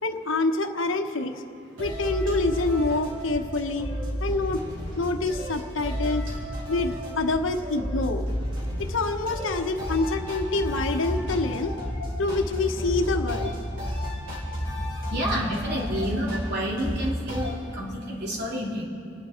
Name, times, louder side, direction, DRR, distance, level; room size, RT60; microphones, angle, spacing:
voice 1, 0.0-1.4 1.8-3.9 4.2-4.6 5.0-6.2 6.7-8.3 8.8-11.7 12.2-13.6, left 3 dB, 80° left, 6 dB, 1.1 m, -26 dB
sound 1, 1.8-17.5, equal, 75° right, 4.6 m, -32 dB
voice 2, 15.1-18.8, equal, 60° right, -4 dB, 3.3 m, -29 dB
29.5 x 10.5 x 4.4 m, 2.6 s
head